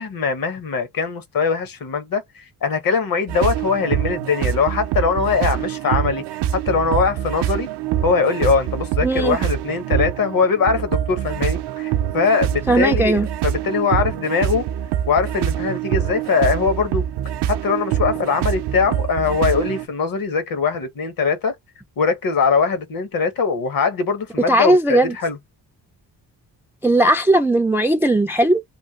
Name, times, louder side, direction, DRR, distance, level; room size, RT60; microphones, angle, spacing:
voice 1, 0.0-6.2 6.5-7.7 8.0-14.7 15.0-17.0 17.5-21.5 22.0-25.4, left 5 dB, 50° left, 1.1 m, -21 dB
sound 1, 3.3-19.9, right 10 dB, 65° right, 0.5 m, -25 dB
voice 2, 9.0-9.4 12.7-13.3 24.5-25.2 26.8-28.6, right 1 dB, 5° right, 0.3 m, -17 dB
3.1 x 2.2 x 2.8 m
cardioid pair, 90°, 43 cm